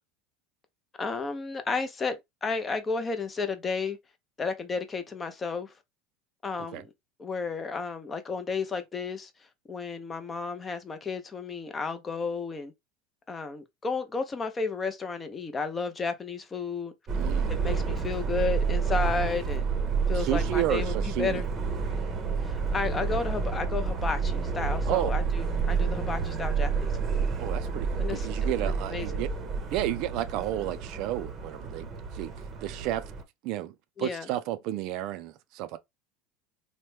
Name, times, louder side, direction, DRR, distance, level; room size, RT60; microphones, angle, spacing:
voice 1, 1.0-4.0 4.4-5.7 6.4-6.9 7.2-9.3 9.7-12.7 13.3-16.9 17.5-19.7 20.1-21.4 22.4-27.3 28.0-28.3 28.9-29.2 34.0-34.3, left 4 dB, 20° left, 0.5 m, -32 dB
Subway metro underground, 17.1-33.2, right 5 dB, 30° right, 0.7 m, -29 dB
voice 2, 17.1-17.5 20.1-21.4 24.9-25.1 27.4-29.3 29.7-32.3 32.6-33.1 33.4-35.8, right 14 dB, 55° right, 0.4 m, -32 dB
3.0 x 2.1 x 3.2 m
supercardioid pair, 125°, 0 cm